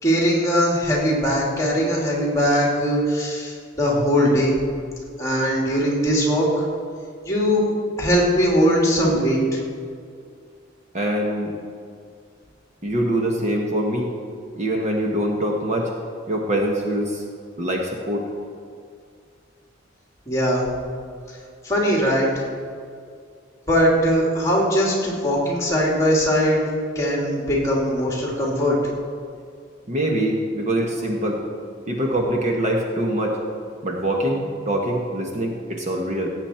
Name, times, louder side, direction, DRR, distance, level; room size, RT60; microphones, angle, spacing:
voice 1, 0.0-4.6 5.2-6.5 7.2-7.7 8.0-9.6 20.3-20.7 21.6-22.4 23.7-26.6 26.9-28.8, equal, 15° left, -3 dB, 2.6 m, -20 dB
voice 2, 10.9-11.5 12.8-14.1 14.5-15.9 16.3-17.2 17.6-18.3 29.9-31.4 31.9-33.4 33.8-36.3, right 1 dB, 35° right, 0 dB, 1.2 m, -24 dB
17.5 x 8.0 x 4.4 m, 2.2 s
head